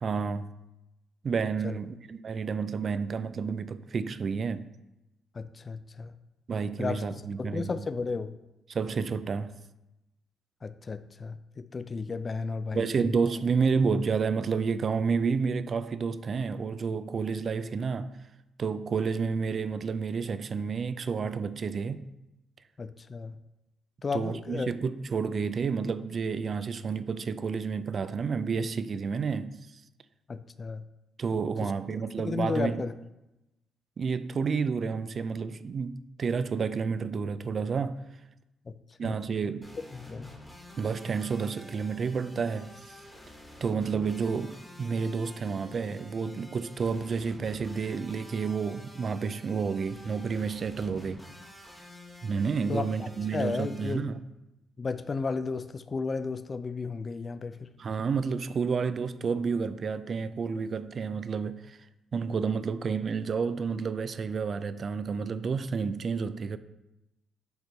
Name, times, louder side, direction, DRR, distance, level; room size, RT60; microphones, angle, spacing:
voice 1, 0.0-0.5 1.2-4.7 6.5-7.7 8.7-9.6 12.7-18.1 18.6-22.1 24.1-29.6 31.2-32.8 34.0-38.0 39.0-39.7 40.8-43.0 43.6-51.2 52.2-54.2 57.8-61.8 62.1-66.6, right 5 dB, 45° right, 0.3 m, -30 dB
voice 2, 5.3-6.2 6.8-8.4 10.6-13.2 22.8-23.4 24.0-24.7 30.3-30.8 31.6-31.7 32.2-32.9 38.7-38.8 39.0-39.2 39.9-40.3 52.7-54.1 54.8-57.7, left 4 dB, 35° left, 0.3 m, -34 dB
sound 1, 39.6-53.9, left 1 dB, 5° left, 1.3 m, -49 dB
6.6 x 4.4 x 3.3 m
cardioid pair, 90°, 0 cm